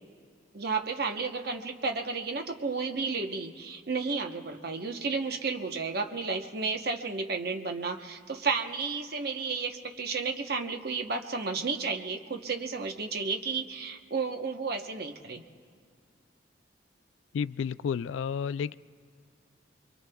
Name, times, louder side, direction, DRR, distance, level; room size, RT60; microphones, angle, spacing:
voice 1, 0.5-15.4, right 4 dB, 55° right, 4 dB, 0.9 m, -32 dB
voice 2, 17.3-18.8, left 7 dB, 85° left, 16 dB, 0.3 m, -31 dB
26.0 x 23.0 x 2.3 m, 2.2 s
head